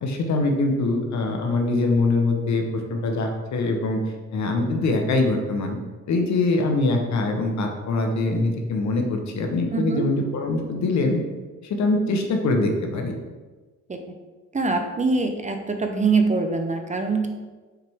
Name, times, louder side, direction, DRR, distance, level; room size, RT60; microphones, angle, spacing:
voice 1, 0.0-4.0 4.3-5.8 6.1-11.2 11.6-13.2, left 2 dB, 65° left, 3 dB, 1.1 m, -23 dB
voice 2, 9.7-10.1 13.9-14.0 14.5-17.3, right 4 dB, 25° right, 5 dB, 0.6 m, -23 dB
5.8 x 4.6 x 3.5 m, 1.3 s
cardioid pair, 90°, 30 cm